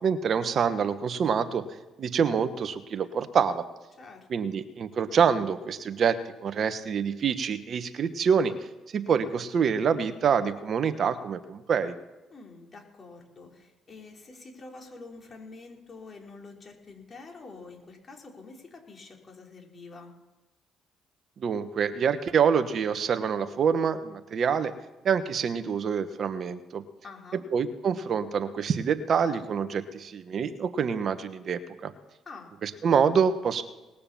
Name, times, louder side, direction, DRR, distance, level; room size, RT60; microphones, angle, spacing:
voice 1, 0.0-1.6 2.0-3.6 4.3-6.2 6.4-8.5 8.9-11.9 21.4-24.7 25.0-26.8 27.5-31.9 32.6-33.6, right 6 dB, 55° right, 11 dB, 1.2 m, -26 dB
voice 2, 4.0-4.5 12.3-20.1 27.0-27.4 32.3-32.5, left 3 dB, 40° left, 1 dB, 4.2 m, -47 dB
19.5 x 6.8 x 7.2 m, 1.1 s
supercardioid pair, 60°, 0 cm